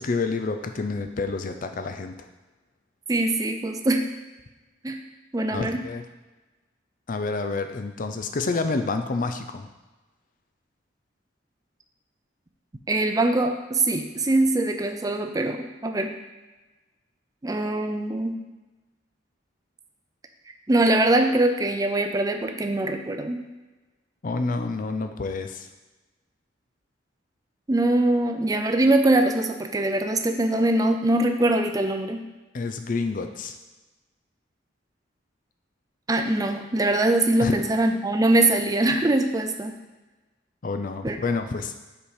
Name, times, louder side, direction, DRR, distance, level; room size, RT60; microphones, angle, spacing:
voice 1, 0.0-2.1 5.5-6.0 7.1-9.7 24.2-25.7 32.5-33.6 37.4-37.6 40.6-41.7, left 3 dB, 45° left, 7 dB, 0.5 m, -28 dB
voice 2, 3.1-4.1 4.8-5.0 5.3-5.8 12.9-16.1 17.4-18.4 20.7-23.5 27.7-32.3 36.1-39.8 41.0-41.2, right 2 dB, 20° right, 5 dB, 0.4 m, -22 dB
5.7 x 4.3 x 4.8 m, 1.2 s
head